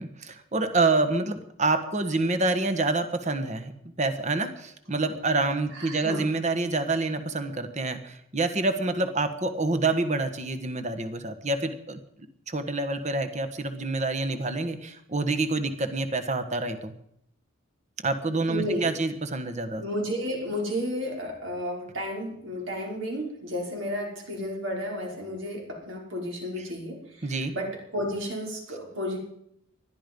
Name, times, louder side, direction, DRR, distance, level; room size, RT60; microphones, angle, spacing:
voice 1, 0.0-3.7 4.0-12.0 12.5-16.9 18.0-19.8 27.2-27.5, right 3 dB, 35° right, 8 dB, 1.5 m, -27 dB
voice 2, 5.7-6.3 18.5-18.9 19.8-29.2, equal, 70° right, -1 dB, 5.3 m, -32 dB
20.5 x 13.0 x 5.4 m, 0.74 s
head